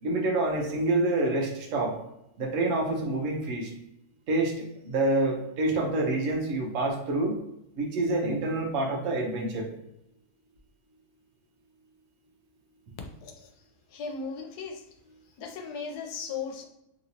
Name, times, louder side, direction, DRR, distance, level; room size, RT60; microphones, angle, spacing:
voice 1, 0.0-2.0 2.4-3.7 4.3-7.4 7.8-9.7, right 2 dB, 60° right, 0 dB, 1.1 m, -27 dB
voice 2, 13.2-13.5 13.9-14.8 15.4-16.6, left 5 dB, 85° left, 3 dB, 1.1 m, -36 dB
3.0 x 3.0 x 2.7 m, 0.84 s
omnidirectional pair, 1.7 m